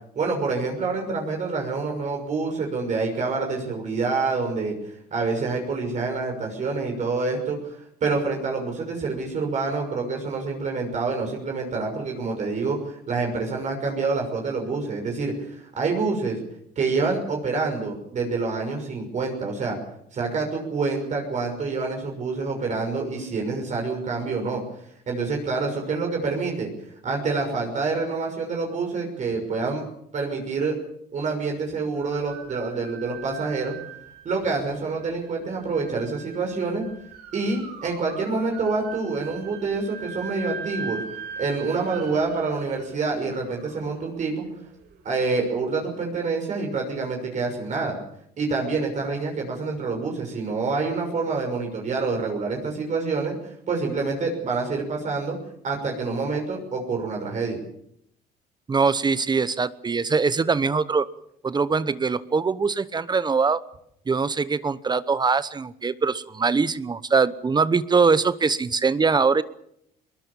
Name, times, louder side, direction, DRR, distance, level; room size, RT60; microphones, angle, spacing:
voice 1, 0.1-4.7 5.1-16.4 16.8-19.8 20.1-24.6 25.1-26.7 27.0-29.8 30.1-30.8 31.1-33.7 34.2-36.8 37.3-41.0 41.4-44.5 45.0-48.0 48.4-53.4 53.7-55.4 55.6-57.6, right 4 dB, 45° right, 1 dB, 6.2 m, -27 dB
sound 1, 31.9-45.0, right 6 dB, 70° right, 5.3 m, -41 dB
voice 2, 58.7-61.1 61.4-63.6 64.1-69.4, right 4 dB, 25° right, 16 dB, 0.9 m, -22 dB
22.0 x 20.5 x 7.2 m, 0.73 s
cardioid pair, 110°, 17 cm